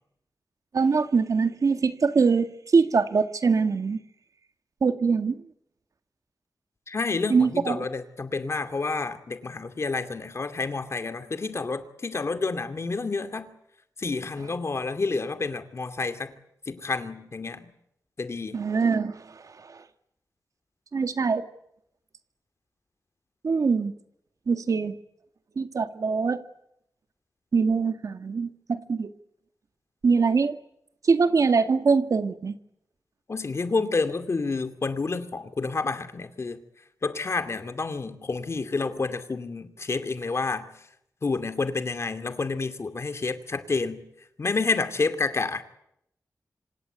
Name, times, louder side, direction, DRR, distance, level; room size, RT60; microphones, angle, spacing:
voice 1, 0.7-4.0 4.8-5.4 7.3-7.8 18.5-19.8 20.9-21.5 23.4-23.9 24.5-24.9 25.6-26.4 27.5-29.1 30.0-30.6 31.0-32.5, right 5 dB, 60° right, 1.9 m, -23 dB
voice 2, 6.9-13.5 14.0-16.4 16.7-17.7 18.2-18.6 33.3-36.6 37.0-40.8 41.2-44.0 44.4-45.6, left 4 dB, 45° left, 2.5 m, -29 dB
26.5 x 26.5 x 8.2 m
wide cardioid pair, 120°, 6 cm